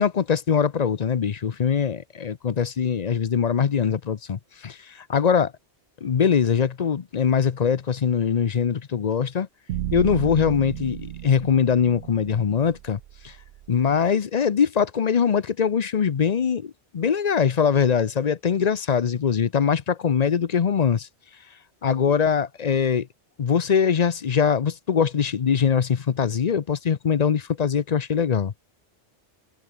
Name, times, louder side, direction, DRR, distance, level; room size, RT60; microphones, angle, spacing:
voice 1, 0.0-5.5 6.0-9.5 9.9-13.0 13.2-13.4 13.7-21.1 21.8-23.1 23.4-28.5, left 7 dB, 45° left, 0.7 m, -22 dB
sound 1, 9.7-13.9, right 13 dB, 85° right, 0.9 m, -34 dB
omnidirectional pair, 1.1 m